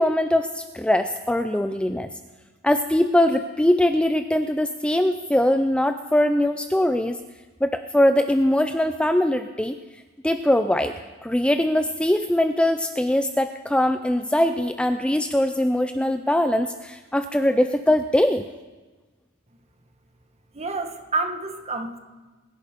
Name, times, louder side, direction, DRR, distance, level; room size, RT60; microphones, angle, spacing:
voice 1, 0.0-2.1 2.6-7.2 7.6-9.8 10.2-18.5, left 1 dB, 5° left, 8 dB, 0.4 m, -21 dB
voice 2, 20.5-22.0, right 3 dB, 30° right, 6 dB, 1.4 m, -28 dB
22.0 x 11.0 x 5.1 m, 1.3 s
head